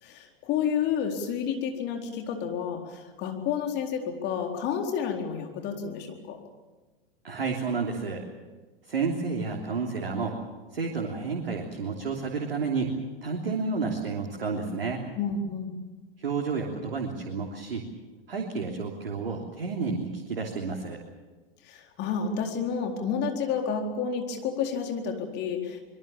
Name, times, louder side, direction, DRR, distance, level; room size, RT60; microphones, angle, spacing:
voice 1, 0.0-6.4 15.1-15.8 21.6-25.8, left 6 dB, 35° left, 3 dB, 4.2 m, -30 dB
voice 2, 7.2-8.2 8.9-10.3 10.7-13.0 13.2-15.0 16.2-17.8 18.3-21.0, right 4 dB, 70° right, 0 dB, 3.3 m, -30 dB
25.0 x 22.5 x 7.1 m, 1.3 s
figure-of-eight pair, 95°, 29 cm